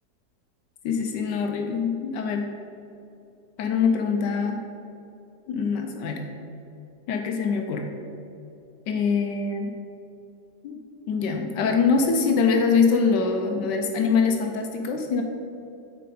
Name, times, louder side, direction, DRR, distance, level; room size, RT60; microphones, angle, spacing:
voice 1, 0.8-2.5 3.6-4.6 5.5-6.2 7.1-7.9 8.9-9.7 10.6-10.8 11.1-15.2, left 5 dB, 80° left, 4 dB, 1.2 m, -24 dB
7.3 x 5.4 x 4.2 m, 2.7 s
omnidirectional pair, 1.9 m